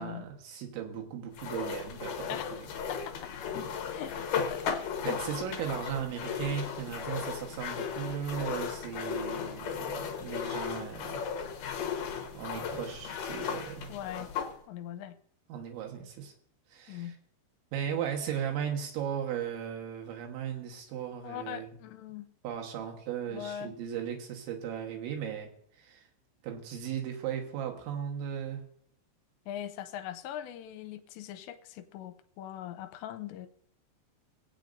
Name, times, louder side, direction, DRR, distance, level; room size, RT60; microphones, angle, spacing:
voice 1, 0.0-2.7 5.0-11.2 12.4-13.9 15.5-16.3 16.7-17.2 17.7-21.8 22.4-25.5 25.8-26.0 26.4-28.7, right 8 dB, 85° right, 1 dB, 3.7 m, -37 dB
sound 1, 1.4-14.5, left 7 dB, 65° left, 2.2 m, -36 dB
voice 2, 2.3-2.6 2.9-3.3 3.9-4.8 11.1-11.3 13.9-14.3 14.7-15.2 16.9-17.2 21.2-22.3 23.3-23.7 29.5-33.5, left 11 dB, 85° left, 10 dB, 2.8 m, -41 dB
21.5 x 8.5 x 2.6 m, 0.68 s
omnidirectional pair, 5.2 m